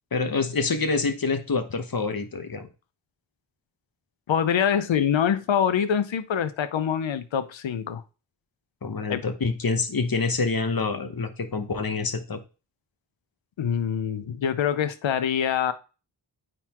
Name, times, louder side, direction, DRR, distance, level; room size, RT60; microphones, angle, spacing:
voice 1, 0.1-2.7 8.8-12.4, left 4 dB, 50° left, 8 dB, 1.0 m, -26 dB
voice 2, 4.3-8.0 9.1-9.2 13.6-15.7, left 8 dB, 80° left, 12 dB, 0.7 m, -25 dB
9.1 x 3.7 x 3.0 m, 0.33 s
cardioid pair, 45°, 45 cm